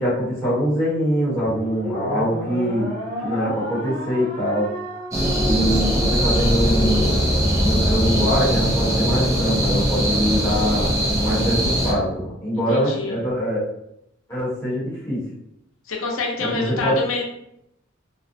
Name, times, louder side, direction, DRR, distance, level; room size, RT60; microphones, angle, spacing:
voice 1, 0.0-2.9 3.2-4.7 5.4-7.2 7.6-13.6 14.3-15.2 16.5-17.0, equal, 15° left, -9 dB, 0.9 m, -23 dB
sound 1, 1.4-8.0, left 1 dB, 55° right, 1.3 m, -32 dB
sound 2, 5.1-11.9, equal, 15° right, 0.5 m, -20 dB
voice 2, 12.5-13.2 15.9-17.2, left 3 dB, 80° left, 0 dB, 0.6 m, -26 dB
2.6 x 2.0 x 2.6 m, 0.77 s
head